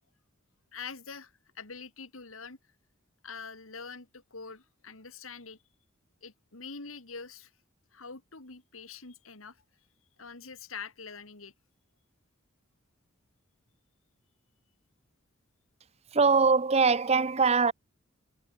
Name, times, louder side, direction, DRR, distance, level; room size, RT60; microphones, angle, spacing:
voice 1, 0.7-2.6 3.2-5.6 6.2-7.5 7.9-9.6 10.2-11.5, left 5 dB, 90° left, 2.7 m, -44 dB
voice 2, 16.1-17.7, right 4 dB, 30° right, 0.7 m, -22 dB
head